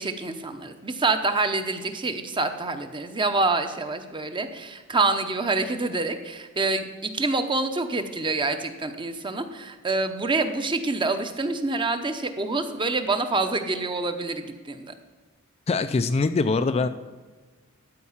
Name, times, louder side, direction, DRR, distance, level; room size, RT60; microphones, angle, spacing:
voice 1, 0.0-14.9 16.6-16.8, right 3 dB, 20° right, 8 dB, 0.7 m, -27 dB
voice 2, 15.7-16.9, left 3 dB, 30° left, 9 dB, 0.3 m, -23 dB
12.5 x 4.7 x 7.2 m, 1.3 s
head